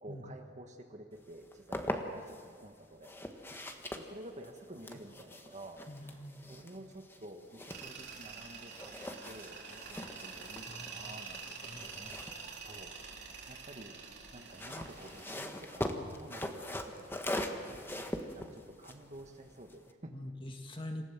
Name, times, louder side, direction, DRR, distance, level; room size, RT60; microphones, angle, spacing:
voice 1, 0.0-3.1 3.9-5.8 6.5-8.9 9.2-11.4 11.8-12.2 12.6-12.9 13.5-14.0 14.3-18.0 18.3-20.2, right 1 dB, 40° right, 4 dB, 1.5 m, -51 dB
sound 1, 1.3-2.4 3.0-8.4 8.7-13.3 14.3-19.9, left 1 dB, 15° left, 1.5 m, -42 dB
voice 2, 5.9-6.5 10.7-11.2 11.7-12.2 20.1-21.0, left 1 dB, 30° left, 4 dB, 2.0 m, -45 dB
Tools, 7.7-15.4, right 5 dB, 65° right, 3.8 m, -47 dB
27.0 x 16.5 x 7.4 m, 2.2 s
head